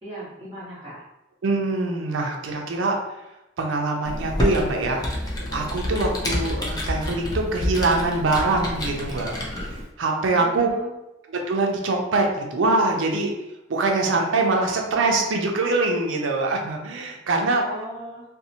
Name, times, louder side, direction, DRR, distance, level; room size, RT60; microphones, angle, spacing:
voice 1, 0.0-1.0 10.2-10.9 17.6-18.2, equal, 15° right, -13 dB, 0.8 m, -38 dB
voice 2, 1.4-3.0 3.6-5.0 5.5-9.7 10.0-10.7 11.3-13.3 13.7-17.6, right 3 dB, 80° right, 2 dB, 0.5 m, -23 dB
Computer keyboard, 4.0-9.8, left 1 dB, 20° left, 0.4 m, -28 dB
2.6 x 2.0 x 2.7 m, 0.95 s
head